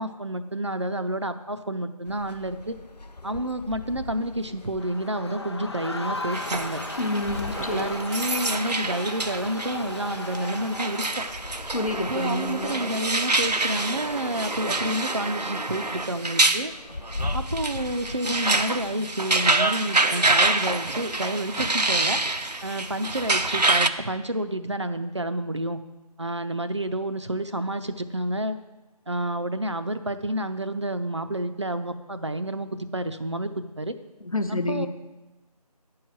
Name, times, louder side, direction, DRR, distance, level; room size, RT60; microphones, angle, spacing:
voice 1, 0.0-2.7 3.2-6.8 7.6-11.2 12.1-16.7 17.3-22.2 22.6-25.8 26.2-28.6 29.1-33.9 34.5-34.9, right 1 dB, 45° right, 9 dB, 0.5 m, -29 dB
sound 1, 2.1-19.0, left 2 dB, 90° left, 0.6 m, -41 dB
Crowd, 4.8-11.6, left 2 dB, 40° left, 0.6 m, -36 dB
sound 2, 6.3-23.9, right 2 dB, 85° right, 0.7 m, -27 dB
voice 2, 7.0-7.9 11.7-12.7 34.2-34.9, left 2 dB, 60° left, 8 dB, 0.9 m, -28 dB
9.8 x 4.7 x 7.4 m, 1.1 s
figure-of-eight pair, 165°, 20 cm